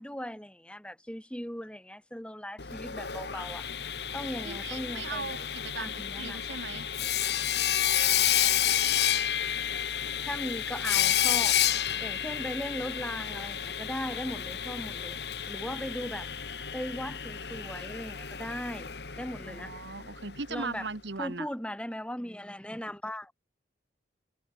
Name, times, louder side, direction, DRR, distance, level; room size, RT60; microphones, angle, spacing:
voice 1, 0.0-3.6 4.1-5.3 5.8-6.6 10.3-11.6 12.0-15.2 15.5-16.3 16.7-19.7 20.5-20.9 21.2-23.3, equal, 5° left, 3.7 m, -38 dB
Sawing, 2.6-20.4, left 10 dB, 70° left, 1.6 m, -30 dB
voice 2, 4.4-6.9 19.5-21.5, right 4 dB, 80° right, 1.7 m, -38 dB
head